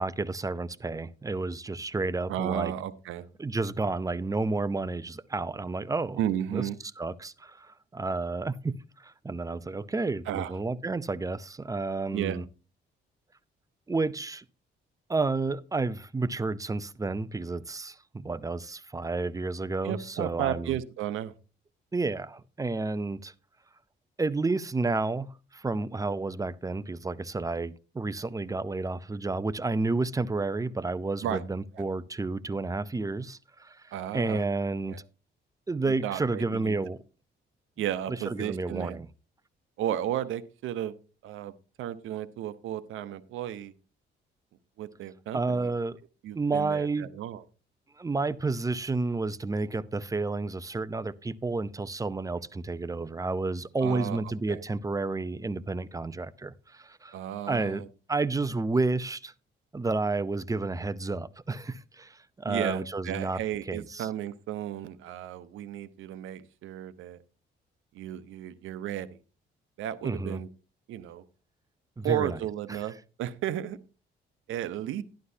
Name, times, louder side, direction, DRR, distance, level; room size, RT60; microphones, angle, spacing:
voice 1, 0.0-2.7 3.4-6.2 6.5-6.6 7.0-12.4 13.9-14.4 15.1-20.7 21.9-23.3 24.2-35.0 35.7-37.0 38.3-39.1 45.3-46.0 46.3-47.1 48.0-57.1 57.5-57.8 58.1-59.3 59.7-63.4 63.7-64.1 70.0-70.4 72.0-72.4 72.7-72.8, right 3 dB, 15° right, 0.6 m, -31 dB
voice 2, 2.3-3.3 6.2-6.8 10.3-10.5 12.1-12.4 19.8-21.3 31.2-31.4 31.7-31.9 33.9-34.5 34.9-35.0 35.9-36.9 37.8-39.0 39.8-40.9 41.2-43.7 44.8-45.7 46.2-47.4 53.8-54.6 57.1-57.9 62.5-67.2 67.9-69.2 69.8-70.5 70.9-71.2 72.0-73.8 74.5-75.0, right 11 dB, 85° right, 0.9 m, -34 dB
11.5 x 11.5 x 2.7 m
cardioid pair, 90°, 20 cm